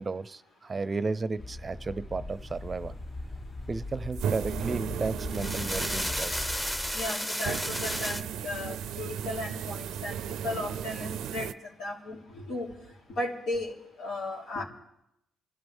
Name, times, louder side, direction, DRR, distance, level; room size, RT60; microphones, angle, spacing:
voice 1, 0.0-2.9 3.7-6.3, right 3 dB, 30° right, 15 dB, 0.6 m, -33 dB
sound 1, 1.4-7.1, left 2 dB, 35° left, 1.6 m, -39 dB
sound 2, 4.1-6.5 7.4-11.5, right 9 dB, 80° right, 0.5 m, -35 dB
sound 3, 5.1-8.2, equal, 10° left, 1.1 m, -32 dB
voice 2, 6.9-10.2 10.4-11.5 11.8-12.7 13.1-14.6, left 2 dB, 80° left, -3 dB, 4.0 m, -35 dB
29.0 x 13.5 x 3.6 m, 0.80 s
cardioid pair, 90°, 0 cm